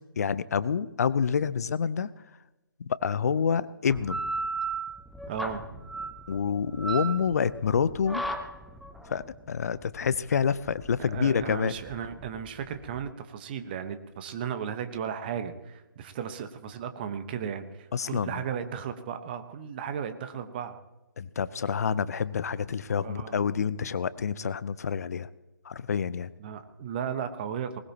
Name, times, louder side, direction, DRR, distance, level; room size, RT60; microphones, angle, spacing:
voice 1, 0.2-2.1 2.9-4.2 6.3-8.3 9.1-11.7 17.9-18.4 21.2-25.3 25.6-26.3, left 6 dB, 45° left, 17 dB, 0.7 m, -28 dB
sound 1, 3.9-13.1, right 3 dB, ahead, 0.6 m, -36 dB
voice 2, 5.3-5.6 11.0-20.8 22.9-23.4 26.4-27.8, right 8 dB, 25° right, 9 dB, 1.2 m, -35 dB
20.0 x 19.5 x 3.0 m, 1.0 s
figure-of-eight pair, 150°, 12 cm